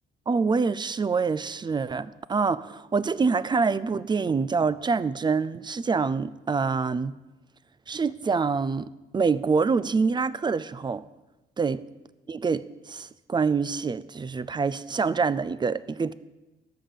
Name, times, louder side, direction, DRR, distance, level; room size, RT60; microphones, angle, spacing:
voice 1, 0.3-7.2 7.9-11.0 11.6-11.8 12.3-16.1, right 5 dB, 20° right, 0.4 m, -26 dB
13.0 x 5.6 x 6.8 m
cardioid pair, 90°, 20 cm